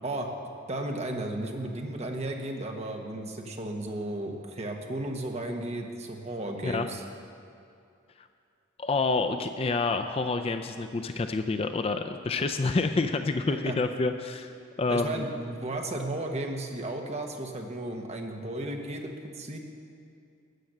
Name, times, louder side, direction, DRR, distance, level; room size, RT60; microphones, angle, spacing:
voice 1, 0.7-7.0 13.5-13.8 14.9-19.6, right 1 dB, 30° right, 2 dB, 1.1 m, -34 dB
voice 2, 8.8-15.2, left 3 dB, 30° left, 7 dB, 0.3 m, -28 dB
13.0 x 7.6 x 6.6 m, 2.5 s
head